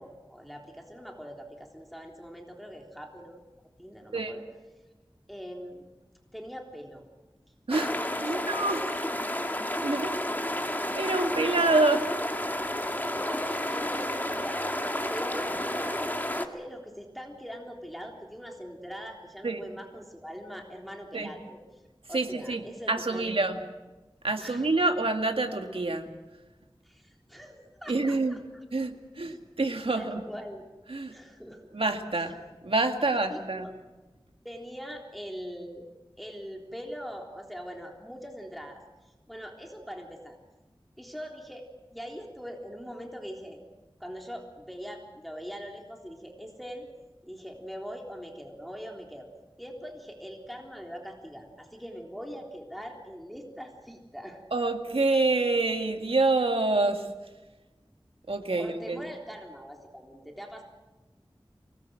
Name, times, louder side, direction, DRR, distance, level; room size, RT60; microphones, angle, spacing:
voice 1, 0.0-3.4 3.8-4.4 5.3-5.8 6.3-7.0 7.8-9.1 11.8-11.9 13.1-21.8 22.1-23.5 24.4-24.6 26.8-28.6 29.3-29.4 29.9-30.7 31.1-31.6 32.2-32.3 33.0-33.7 34.4-35.9 36.2-40.4 41.0-43.6 44.0-46.9 47.2-49.3 49.6-54.4 58.5-60.6, equal, ahead, 1 dB, 3.6 m, -42 dB
sound 1, 7.7-16.5, left 1 dB, 20° left, 2.0 m, -31 dB
voice 2, 8.2-8.8 9.8-10.2 10.9-12.0 19.4-19.6 21.1-21.3 22.1-22.6 22.9-23.6 24.2-26.1 27.9-28.4 28.7-30.2 30.9-31.1 31.7-32.4 32.6-33.7 54.5-57.0 58.3-59.0, right 2 dB, 80° right, 5 dB, 2.0 m, -26 dB
25.0 x 20.0 x 7.6 m, 1.1 s
wide cardioid pair, 50°, 9 cm